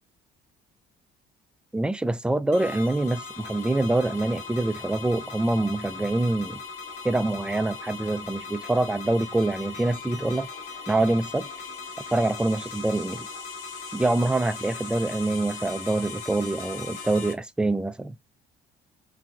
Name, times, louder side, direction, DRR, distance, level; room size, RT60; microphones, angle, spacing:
voice 1, 1.7-6.6 7.0-10.5 10.9-11.5 12.1-13.3 13.9-18.2, right 2 dB, 5° right, 0.3 m, -25 dB
sound 1, 2.5-17.3, left 5 dB, 85° left, 0.8 m, -39 dB
4.0 x 2.3 x 2.3 m
supercardioid pair, 80°, 21 cm